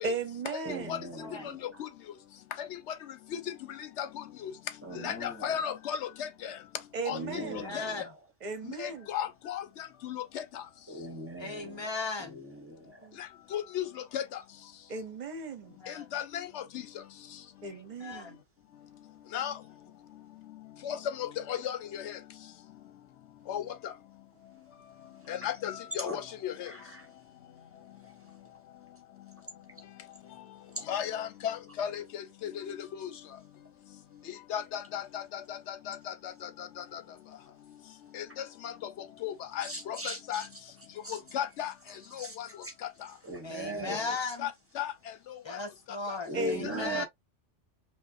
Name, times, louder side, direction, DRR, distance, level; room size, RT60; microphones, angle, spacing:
voice 1, 0.0-1.0 4.9-5.2 6.9-7.6 8.4-9.1 13.0-13.2 14.9-15.8 17.6-18.4 43.6-43.9 46.3-47.1, right 3 dB, 40° right, 0.8 m, -36 dB
voice 2, 0.6-1.8 4.8-5.7 7.1-8.2 10.9-13.1 25.4-25.5 26.0-26.4 26.6-27.1 30.7-30.8 39.6-41.2 41.9-44.2 46.2-47.1, equal, 15° right, 0.9 m, -41 dB
voice 3, 4.0-4.5 5.0-6.5 7.1-7.4 7.7-7.8 8.8-9.6 10.0-10.4 13.5-13.9 14.1-14.2 16.1-16.6 19.3-19.5 20.8-22.2 23.5-23.6 25.3-26.7 30.9-33.1 34.5-35.6 35.9-36.0 36.9-37.0 38.1-38.2 38.6-38.7 39.2-40.4 41.1-41.7 42.2-42.5 43.9-44.0 44.4-44.5 44.8-44.9 45.3-45.4 47.0-47.1, left 9 dB, 75° left, 0.9 m, -35 dB
voice 4, 7.3-8.1 11.4-12.4 15.7-16.1 17.6-18.4 43.4-44.5 45.4-47.0, left 3 dB, 45° left, 0.3 m, -37 dB
5.1 x 2.2 x 2.5 m
omnidirectional pair, 1.2 m